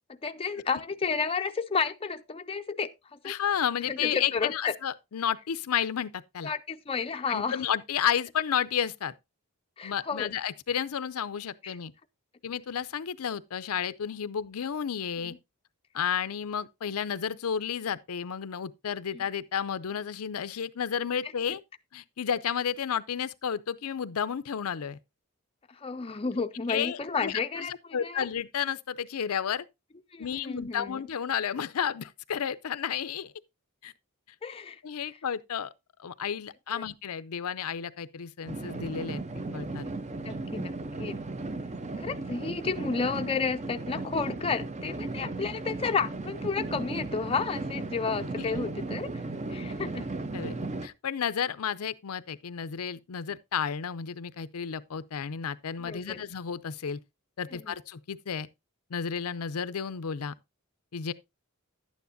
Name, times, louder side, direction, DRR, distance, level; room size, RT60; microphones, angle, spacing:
voice 1, 0.1-3.4 3.9-4.7 6.4-7.6 9.8-10.3 11.6-11.8 15.2-15.4 19.1-19.2 21.2-21.3 25.7-28.3 30.1-31.0 34.4-34.8 36.7-36.9 39.9-40.0 40.2-41.2 42.0-49.1 49.5-50.1 55.8-56.2 57.5-57.7, left 5 dB, 25° left, 0.5 m, -32 dB
voice 2, 3.2-6.5 7.3-9.1 9.8-11.9 12.4-15.4 15.9-21.6 21.9-25.0 26.7-29.6 30.2-33.3 33.8-33.9 34.8-35.7 36.0-39.2 39.5-39.9 48.4-48.5 50.3-50.6 50.8-57.0 57.4-58.5 58.9-60.3 60.9-61.1, left 8 dB, 80° left, 0.5 m, -32 dB
sound 1, 38.5-50.9, right 2 dB, 30° right, 0.6 m, -36 dB
11.5 x 9.3 x 2.6 m
head